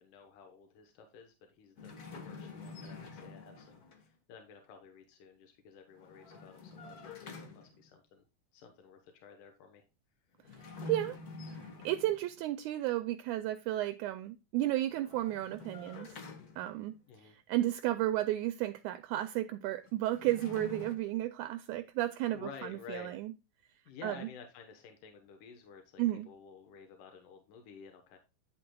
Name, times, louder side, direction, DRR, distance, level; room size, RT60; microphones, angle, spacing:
voice 1, 0.0-1.9 2.2-8.2 8.5-9.8 17.1-17.4 22.3-23.2 23.9-28.2, left 6 dB, 80° left, 2.7 m, -52 dB
sound 1, 1.8-4.1 5.9-7.9 10.4-12.4 14.8-17.0 19.8-21.0, left 3 dB, 60° left, 0.9 m, -47 dB
voice 2, 11.8-16.1 16.6-16.9 17.2-23.3 24.0-24.2 26.0-26.3, right 14 dB, 80° right, 1.9 m, -33 dB
10.0 x 7.6 x 2.3 m
omnidirectional pair, 3.7 m